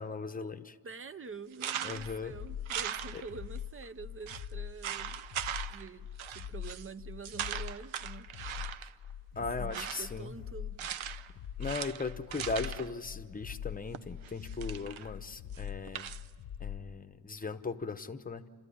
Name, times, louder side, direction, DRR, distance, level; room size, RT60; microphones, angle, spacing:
voice 1, 0.0-0.7 1.8-2.3 3.1-3.2 9.4-10.3 11.6-16.1 16.6-18.5, left 4 dB, 20° left, 8 dB, 0.8 m, -38 dB
voice 2, 0.8-5.2 5.7-8.3 9.4-10.8, right 5 dB, 30° right, 14 dB, 0.5 m, -46 dB
sound 1, 1.5-2.2 2.7-3.6 3.8-3.9 4.3-4.5 4.8-5.9 6.2-6.9 7.2-8.9 9.5-10.2 10.8-11.3 11.6-12.9 13.9-15.1 15.5-16.3, right 9 dB, 85° right, 0.8 m, -39 dB
sound 2, 1.9-16.9, left 9 dB, 85° left, 1.0 m, -43 dB
28.5 x 13.5 x 10.0 m, 2.1 s
wide cardioid pair, 145°, 47 cm